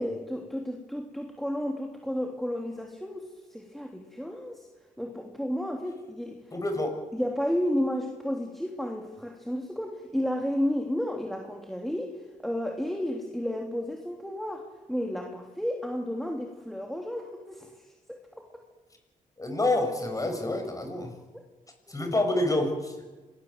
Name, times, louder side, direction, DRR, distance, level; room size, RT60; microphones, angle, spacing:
voice 1, 0.0-4.7 5.0-6.4 7.1-18.4 22.0-22.1, equal, ahead, 2 dB, 3.2 m, -32 dB
voice 2, 6.5-7.0 19.4-21.1 21.9-23.0, left 2 dB, 25° left, 5 dB, 6.8 m, -28 dB
27.0 x 20.5 x 8.0 m, 1.2 s
cardioid pair, 85°, 14 cm